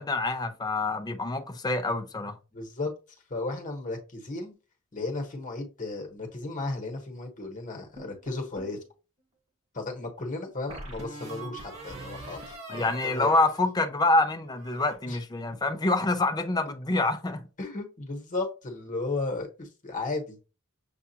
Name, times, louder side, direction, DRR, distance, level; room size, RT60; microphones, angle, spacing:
voice 1, 0.0-2.4 12.7-17.4, left 2 dB, 20° left, 0.5 m, -26 dB
voice 2, 2.5-2.9 3.3-4.5 4.9-8.8 9.7-13.3 15.1-15.2 17.6-20.4, left 2 dB, 35° left, 1.1 m, -34 dB
sound 1, 8.0-8.8 10.7-14.2 14.5-15.0, right 2 dB, 30° right, 1.2 m, -43 dB
6.8 x 2.4 x 2.7 m
head